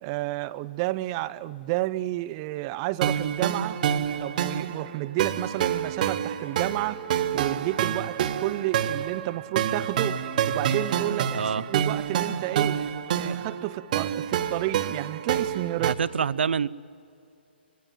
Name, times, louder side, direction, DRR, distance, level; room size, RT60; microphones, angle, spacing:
voice 1, 0.0-7.0 7.3-10.2 10.5-12.8 13.1-15.9, right 17 dB, 30° right, 15 dB, 0.5 m, -31 dB
sound 1, 3.0-15.9, right 9 dB, 45° right, 1.2 m, -28 dB
voice 2, 11.3-11.7 15.8-16.7, right 6 dB, 70° right, 19 dB, 0.6 m, -26 dB
25.5 x 20.5 x 9.2 m, 2.6 s
hypercardioid pair, 145°, 6 cm